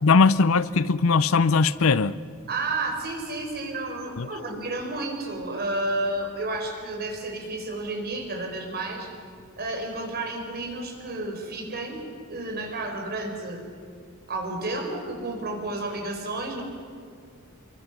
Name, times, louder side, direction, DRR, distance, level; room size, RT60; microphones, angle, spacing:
voice 1, 0.0-2.2 4.2-4.3, left 4 dB, 65° left, 0.6 m, -20 dB
voice 2, 2.5-9.1 9.6-12.0 12.3-13.6 14.3-16.6, right 2 dB, 45° right, 4.6 m, -31 dB
27.0 x 23.0 x 6.1 m
head